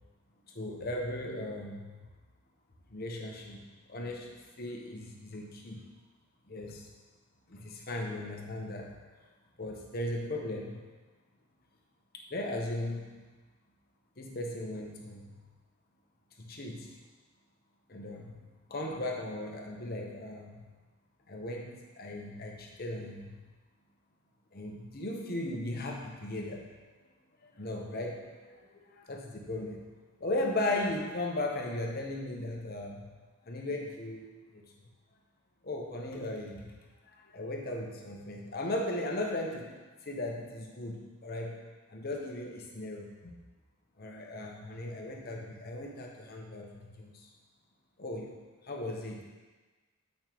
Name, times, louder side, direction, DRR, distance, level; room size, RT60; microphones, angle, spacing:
voice 1, 0.5-2.0 2.9-3.6 3.9-5.9 6.5-6.9 7.5-8.9 9.6-10.7 12.1-13.3 14.2-15.4 16.4-16.9 17.9-18.4 18.7-20.6 21.3-23.3 24.5-26.7 27.4-29.8 30.2-33.0 33.5-34.6 35.6-36.6 37.1-39.7 40.0-41.6 41.9-43.3 44.0-47.3 48.0-48.3 48.6-49.2, left 1 dB, 45° left, 0 dB, 0.9 m, -37 dB
8.8 x 5.3 x 3.1 m, 1.3 s
head